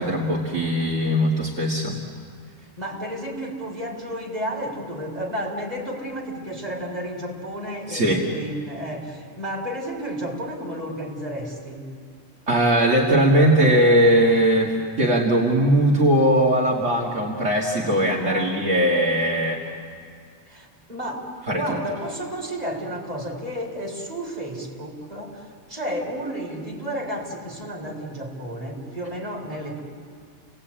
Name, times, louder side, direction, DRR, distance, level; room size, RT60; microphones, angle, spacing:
voice 1, 0.0-2.0 7.9-8.2 12.5-19.6 21.5-21.6, right 1 dB, 60° right, -2 dB, 2.4 m, -19 dB
voice 2, 2.8-11.8 18.2-18.6 20.5-29.8, equal, 30° right, -1 dB, 4.3 m, -32 dB
29.5 x 19.5 x 8.7 m, 2.2 s
omnidirectional pair, 1.4 m